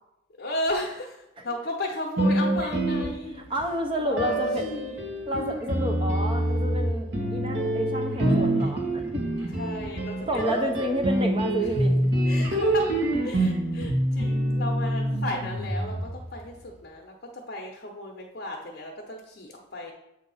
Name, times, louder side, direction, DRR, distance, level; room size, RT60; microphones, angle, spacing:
voice 1, 0.4-3.4 4.0-4.3 4.6-5.2 9.5-10.9 12.3-19.9, left 1 dB, 50° left, -1 dB, 0.8 m, -35 dB
sound 1, 2.2-3.6 4.2-16.4, right 1 dB, 55° right, 1.2 m, -26 dB
voice 2, 3.5-4.7 5.3-9.3 10.3-12.1, equal, 25° right, 2 dB, 0.8 m, -30 dB
7.6 x 2.7 x 5.5 m, 0.91 s
head